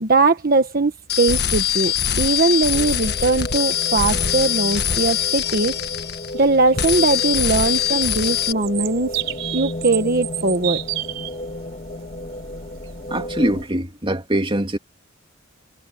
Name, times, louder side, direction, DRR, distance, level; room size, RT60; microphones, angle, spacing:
voice 1, 0.0-5.8 6.3-9.1 9.5-10.8, right 3 dB, 45° right, 1.2 m, -20 dB
sound 1, 1.1-6.5 6.8-8.5, left 9 dB, 55° left, 1.5 m, -22 dB
sound 2, 2.7-13.7, left 1 dB, 40° left, 1.9 m, -33 dB
sound 3, 4.7-13.7, right 15 dB, 70° right, 4.0 m, -32 dB
voice 2, 13.1-14.8, right 1 dB, 25° right, 2.8 m, -22 dB
head